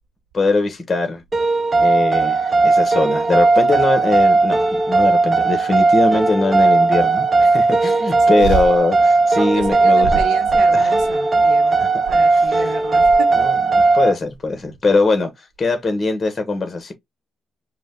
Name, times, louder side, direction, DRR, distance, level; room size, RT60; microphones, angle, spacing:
voice 1, 0.3-1.2 1.8-10.2 10.7-10.9 11.8-11.9 12.3-12.6 13.4-13.5 13.9-16.9, left 3 dB, 30° left, 1.1 m, -21 dB
sound 1, 1.3-14.1, right 3 dB, 25° right, 0.8 m, -16 dB
voice 2, 8.2-8.6 9.4-13.4, right 5 dB, 85° right, 1.0 m, -28 dB
4.9 x 2.2 x 3.8 m
cardioid pair, 90°, 0 cm